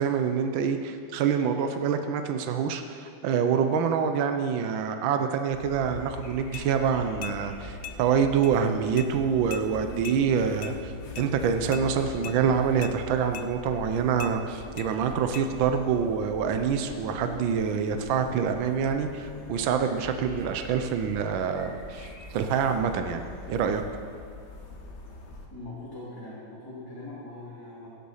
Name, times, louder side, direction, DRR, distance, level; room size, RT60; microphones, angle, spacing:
voice 1, 0.0-23.2 23.5-23.8, right 7 dB, 75° right, 7 dB, 1.5 m, -26 dB
sound 1, 5.5-25.5, left 2 dB, 40° left, 1.4 m, -42 dB
sound 2, 6.5-6.7 7.2-7.4 7.8-8.0 8.4-8.5 9.0-9.1 9.5-9.7 10.0-10.2 10.6-10.8 11.2-11.3 11.7-11.9 12.2-12.4 12.8-13.0 13.3-13.5 14.2-14.3 14.8-14.9 15.3-15.5, left 11 dB, 85° left, 1.5 m, -39 dB
voice 2, 25.5-27.9, left 2 dB, 10° left, -9 dB, 2.5 m, -41 dB
16.0 x 8.3 x 5.6 m, 2.3 s
omnidirectional pair, 2.2 m